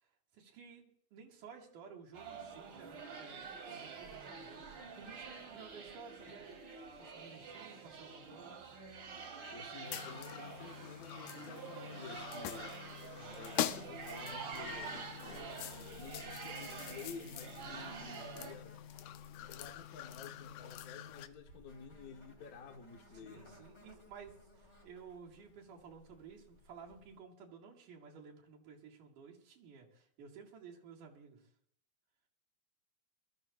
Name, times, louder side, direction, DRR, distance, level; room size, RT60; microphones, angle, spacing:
voice 1, 0.0-6.6 7.0-8.6 13.0-13.8 23.2-31.4, right 6 dB, 85° right, 3.6 m, -55 dB
sound 1, 2.1-18.5, right 4 dB, 50° right, 2.1 m, -47 dB
voice 2, 9.5-12.8 13.3-15.0 16.0-18.8 19.5-23.7, left 5 dB, 60° left, 0.9 m, -51 dB
sound 2, 9.8-21.3, left 11 dB, 80° left, 2.0 m, -44 dB
Insect, 12.0-27.2, left 1 dB, 25° left, 2.4 m, -63 dB
21.5 x 14.0 x 2.5 m
omnidirectional pair, 3.6 m